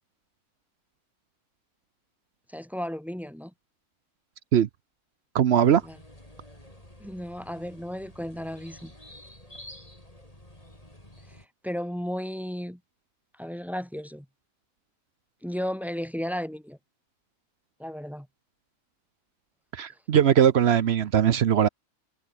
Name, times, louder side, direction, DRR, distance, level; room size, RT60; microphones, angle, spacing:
voice 1, 2.5-3.5 5.8-6.0 7.0-8.9 11.3-11.4 11.6-12.8 13.4-14.2 15.4-16.8 17.8-18.3, equal, ahead, 3.3 m, -34 dB
voice 2, 5.3-5.8 19.7-21.7, right 9 dB, 60° right, 0.8 m, -20 dB
sound 1, 5.6-11.5, left 1 dB, 20° left, 7.2 m, -49 dB
omnidirectional pair, 1.6 m